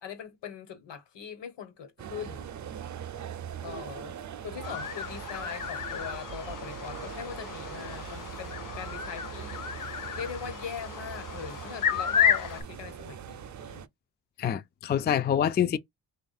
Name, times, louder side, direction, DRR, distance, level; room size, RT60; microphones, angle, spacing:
voice 1, 0.0-2.5 3.6-4.2 4.4-9.6 10.1-13.9, left 8 dB, 70° left, 1.4 m, -41 dB
sound 1, 2.0-13.9, right 9 dB, 40° right, 0.5 m, -41 dB
sound 2, 4.6-12.6, left 8 dB, 45° left, 0.7 m, -32 dB
voice 2, 14.4-15.8, left 9 dB, 25° left, 0.4 m, -26 dB
3.1 x 2.5 x 4.2 m
cardioid pair, 65°, 44 cm